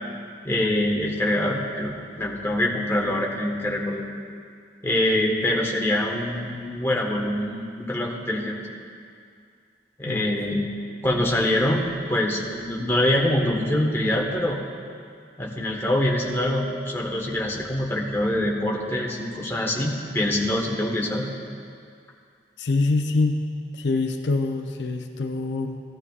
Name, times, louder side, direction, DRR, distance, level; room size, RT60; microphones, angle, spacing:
voice 1, 0.4-4.1 4.8-8.6 10.0-10.7 11.0-14.6 15.4-21.3, left 1 dB, 15° left, -2 dB, 1.3 m, -24 dB
voice 2, 22.6-23.4 23.7-25.8, left 3 dB, 80° left, 5 dB, 0.6 m, -25 dB
16.5 x 12.5 x 2.4 m, 2.2 s
head